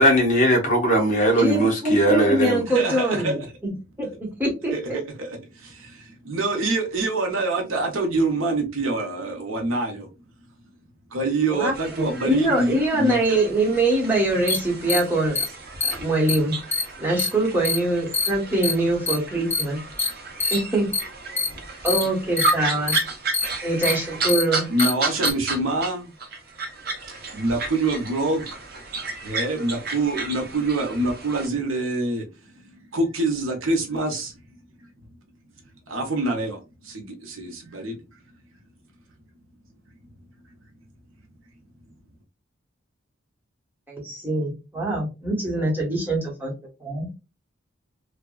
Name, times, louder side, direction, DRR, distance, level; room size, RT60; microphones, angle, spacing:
voice 1, 0.0-2.6, right 1 dB, 40° left, 1.0 m, -19 dB
voice 2, 1.4-3.7 4.0-4.1 4.4-5.0 11.5-15.4 16.0-16.5 17.0-19.8 20.5-20.9 21.8-23.0 23.6-24.6 43.9-46.5 46.8-47.1, right 1 dB, 10° right, 1.1 m, -23 dB
voice 3, 2.7-3.3 4.7-4.8 5.2-10.1 11.1-13.2 24.7-26.1 27.3-28.6 29.2-32.2 32.5-34.3 35.9-36.6 36.8-38.0, right 2 dB, 90° right, 0.9 m, -25 dB
sound 1, 11.7-25.9 26.2-31.5, right 3 dB, 50° right, 0.8 m, -32 dB
sound 2, 14.5-14.6 14.9-15.0 15.3-15.4 15.8-15.9 16.3-16.4 16.7-16.8 17.2-17.3 17.6-17.8 18.1-18.3 18.6-18.7 19.1-19.2 19.5-19.6 20.0-20.1 20.4-20.5 20.9-21.0 21.4-21.5 21.8-22.0 22.4-22.5 22.9-23.0 23.3-23.4 23.8-23.9 24.3-24.4 24.8-24.9 25.2-25.3, left 4 dB, 10° left, 0.4 m, -23 dB
3.4 x 2.2 x 2.3 m
head